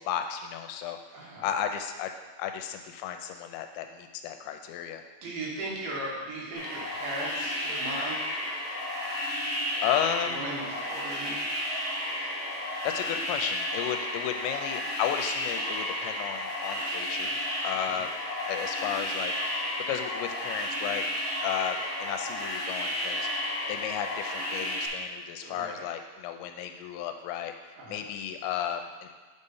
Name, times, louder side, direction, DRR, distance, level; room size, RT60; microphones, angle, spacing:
voice 1, 0.0-1.0 1.4-2.1 2.4-5.0 9.8-10.4 12.8-17.4 17.6-18.1 18.5-19.3 19.9-21.1 21.4-23.3 23.7-27.5 27.9-29.1, left 9 dB, 85° left, 6 dB, 2.8 m, -33 dB
voice 2, 1.1-1.5 5.2-8.2 10.2-11.4 17.7-18.0 25.4-25.9 27.8-28.0, right 2 dB, 80° right, -4 dB, 3.9 m, -37 dB
sound 1, 6.5-24.9, left 1 dB, 25° right, 1.9 m, -32 dB
6.7 x 5.4 x 5.4 m, 1.4 s
omnidirectional pair, 5.1 m